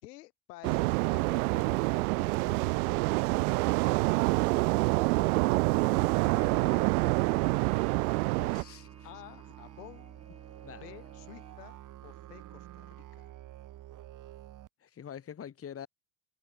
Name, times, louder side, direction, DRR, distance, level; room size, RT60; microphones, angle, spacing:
voice 1, 0.0-6.9 7.2-7.6 9.0-10.2 10.6-13.3, left 17 dB, 75° left, 2.4 m, -52 dB
sound 1, 0.6-8.6, right 27 dB, 65° right, 0.5 m, -27 dB
Musical instrument, 1.1-14.7, right 13 dB, 40° right, 1.3 m, -50 dB
voice 2, 6.3-6.8 8.4-8.9 10.6-10.8 14.8-15.9, left 8 dB, 30° left, 1.8 m, -45 dB
Trumpet, 6.5-11.6, right 2 dB, 10° right, 6.8 m, -58 dB
hypercardioid pair, 75°, 48 cm